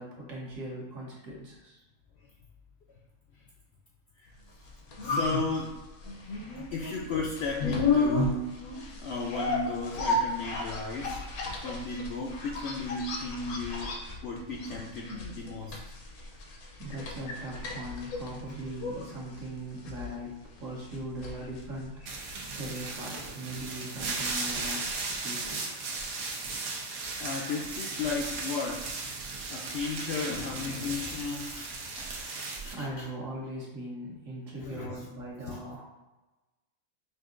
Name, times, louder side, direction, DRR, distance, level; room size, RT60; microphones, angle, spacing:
voice 1, 0.0-1.8 16.8-22.3 22.5-24.9 25.2-25.6 32.6-35.9, right 1 dB, 60° right, -4 dB, 1.4 m, -40 dB
sound 1, 4.5-22.5 22.8-22.9, left 3 dB, 85° left, 1.2 m, -33 dB
voice 2, 5.0-5.8 6.7-8.6 9.0-11.3 11.6-15.8 22.7-22.8 27.2-28.9 29.5-33.1 34.6-35.0 35.5-35.6, left 3 dB, 65° left, -1 dB, 0.6 m, -35 dB
sound 2, 22.1-32.7, right 3 dB, 80° right, 1.2 m, -36 dB
5.6 x 2.6 x 2.5 m, 1.1 s
omnidirectional pair, 1.5 m